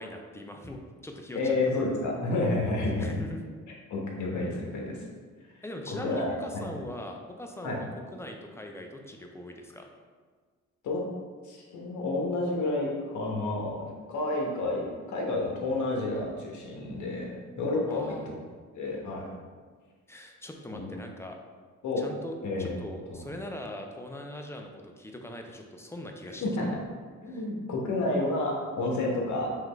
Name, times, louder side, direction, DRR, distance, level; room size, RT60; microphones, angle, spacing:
voice 1, 0.0-1.9 2.8-3.4 5.6-9.9 17.9-18.3 20.1-21.4 22.0-22.3 22.6-26.8 27.3-27.4, left 1 dB, 10° left, 3 dB, 0.4 m, -41 dB
voice 2, 1.3-3.1 3.9-5.0 6.0-6.6 7.6-7.8 10.8-11.0 11.4-18.4 18.8-19.3 20.7-20.9 21.8-22.0 22.4-22.7 23.1-23.2 26.4-26.7 27.2-29.5, left 2 dB, 70° left, -2 dB, 1.0 m, -30 dB
3.8 x 3.0 x 3.3 m, 1.5 s
cardioid pair, 90°, 30 cm